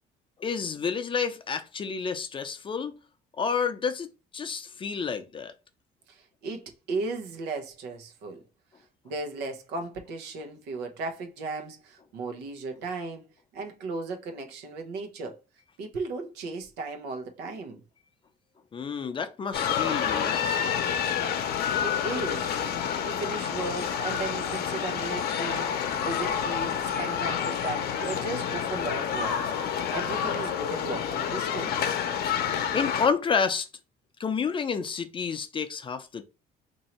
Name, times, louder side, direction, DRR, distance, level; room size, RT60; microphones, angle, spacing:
voice 1, 0.4-3.0 3.4-4.1 4.3-5.5 18.7-20.9 32.7-33.7 34.2-36.2, left 6 dB, 30° left, 0.5 m, -30 dB
voice 2, 6.1-8.4 9.0-13.3 13.5-15.4 15.8-17.8 21.5-22.6 23.0-29.5 29.9-31.9, right 3 dB, 85° right, 0.8 m, -36 dB
sound 1, 19.5-33.1, left 8 dB, 70° left, 0.7 m, -29 dB
3.0 x 2.7 x 4.3 m
cardioid pair, 110°, 17 cm